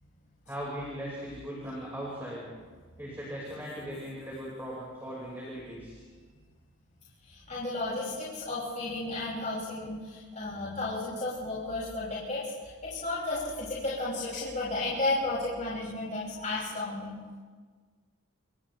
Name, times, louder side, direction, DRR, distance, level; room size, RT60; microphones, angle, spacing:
voice 1, 0.5-2.5 3.0-6.0, equal, 10° right, -5 dB, 5.1 m, -39 dB
voice 2, 7.3-12.4 12.8-17.2, left 2 dB, 35° left, -7 dB, 6.5 m, -33 dB
29.0 x 27.5 x 3.4 m, 1.5 s
head